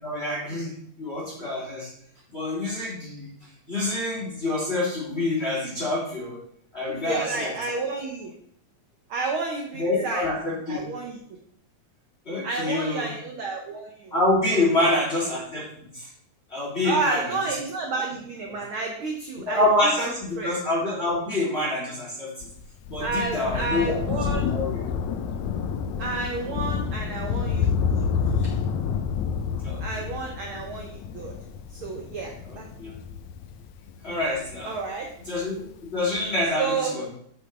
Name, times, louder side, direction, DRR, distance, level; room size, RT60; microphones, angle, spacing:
voice 1, 0.0-0.7 1.0-1.9 2.3-3.3 3.7-6.4 6.7-7.5 9.8-10.8 12.3-13.1 14.1-15.7 15.9-16.1 16.5-17.3 19.5-22.5 22.9-24.0 24.4-24.8 29.6-29.8 32.8-32.9 34.0-34.8 35.3-37.1, left 2 dB, 20° left, -7 dB, 2.6 m, -26 dB
voice 2, 6.9-8.3 9.1-10.3 10.7-11.2 12.4-14.1 14.5-15.0 16.8-19.6 20.4-20.5 23.0-24.5 26.0-28.0 28.4-28.5 29.8-31.3 31.7-32.7 34.7-35.1 36.6-37.0, right 4 dB, 80° right, 1 dB, 1.1 m, -31 dB
Thunder, 22.4-35.3 36.2-36.3, left 6 dB, 75° left, 2.0 m, -29 dB
8.4 x 6.4 x 3.3 m, 0.65 s
omnidirectional pair, 3.7 m